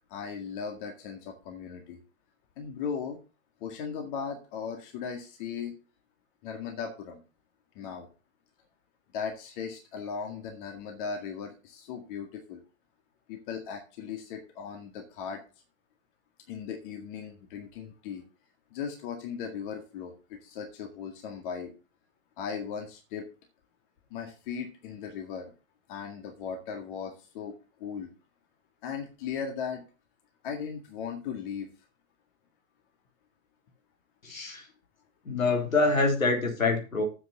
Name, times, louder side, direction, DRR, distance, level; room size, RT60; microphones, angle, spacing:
voice 1, 0.1-2.0 2.6-3.2 3.6-5.8 6.4-7.2 7.8-8.1 9.1-12.6 13.3-15.4 16.5-18.2 18.7-21.7 22.4-23.3 24.1-25.5 25.9-28.1 28.8-29.8 30.4-31.7, left 6 dB, 40° left, 3 dB, 2.0 m, -37 dB
voice 2, 34.2-34.7 35.2-37.0, left 3 dB, 75° left, 2 dB, 3.9 m, -25 dB
7.8 x 6.8 x 7.0 m, 0.33 s
figure-of-eight pair, 115°, 41 cm